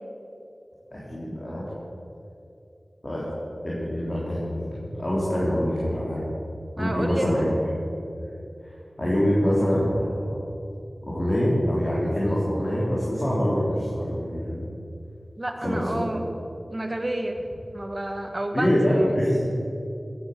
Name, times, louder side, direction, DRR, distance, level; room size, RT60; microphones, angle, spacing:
voice 1, 0.9-1.7 3.0-3.2 3.6-6.2 6.8-7.7 8.2-8.3 9.0-10.4 11.0-14.7 15.6-15.9 18.5-19.5, equal, 40° left, -7 dB, 3.6 m, -25 dB
voice 2, 6.8-7.3 15.4-16.2 16.7-17.4 17.7-19.0, right 1 dB, 35° right, 4 dB, 1.6 m, -30 dB
14.5 x 10.0 x 6.9 m, 2.7 s
wide cardioid pair, 50°, 0 cm